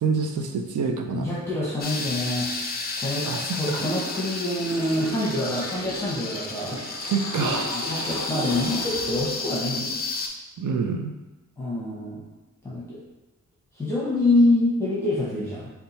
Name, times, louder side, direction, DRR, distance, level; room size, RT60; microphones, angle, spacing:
voice 1, 0.0-1.3 3.2-3.8 7.1-7.7 10.6-11.1, right 5 dB, 75° right, 5 dB, 0.5 m, -27 dB
voice 2, 1.1-2.6 3.0-3.3 3.5-6.8 7.7-9.9 11.6-12.2 12.6-13.0 13.7-15.7, left 1 dB, 10° left, -8 dB, 0.8 m, -26 dB
sound 1, 1.8-10.3, left 3 dB, 30° left, 0.5 m, -32 dB
Water / Toilet flush, 3.7-9.9, right 1 dB, 45° right, 1.0 m, -36 dB
4.3 x 2.3 x 4.0 m, 1.1 s
wide cardioid pair, 130°, 31 cm